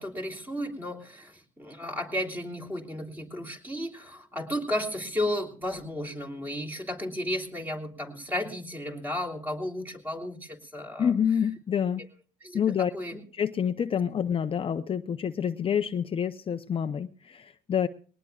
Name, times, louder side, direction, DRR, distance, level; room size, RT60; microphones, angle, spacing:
voice 1, 0.0-11.1 12.4-13.2, left 1 dB, 10° right, 2 dB, 3.0 m, -33 dB
voice 2, 11.0-12.0 12.5-12.9 13.3-17.9, left 8 dB, 35° left, 8 dB, 0.6 m, -27 dB
21.0 x 19.0 x 2.3 m, 0.40 s
cardioid pair, 110°, 17 cm